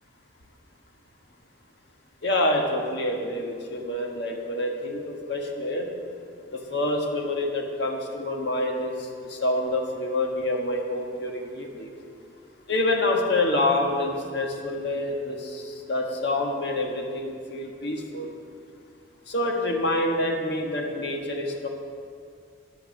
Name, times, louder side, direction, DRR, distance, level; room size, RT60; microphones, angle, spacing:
voice 1, 2.2-5.9 6.5-11.9 12.7-18.3 19.3-21.7, left 1 dB, 60° left, 1 dB, 1.5 m, -27 dB
9.7 x 9.3 x 6.6 m, 2.2 s
head